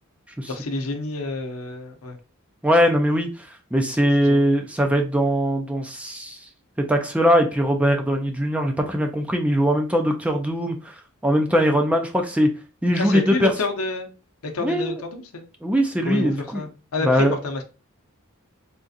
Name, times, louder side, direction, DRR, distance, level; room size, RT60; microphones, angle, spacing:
voice 1, 0.5-2.2 4.2-4.5 13.0-14.1 14.4-15.4 16.0-17.6, left 3 dB, 80° left, 0.7 m, -29 dB
voice 2, 2.6-6.4 6.9-12.5 12.8-13.5 14.6-15.0 15.6-16.6 17.0-17.3, equal, 5° right, 0.4 m, -21 dB
3.6 x 2.4 x 2.6 m
head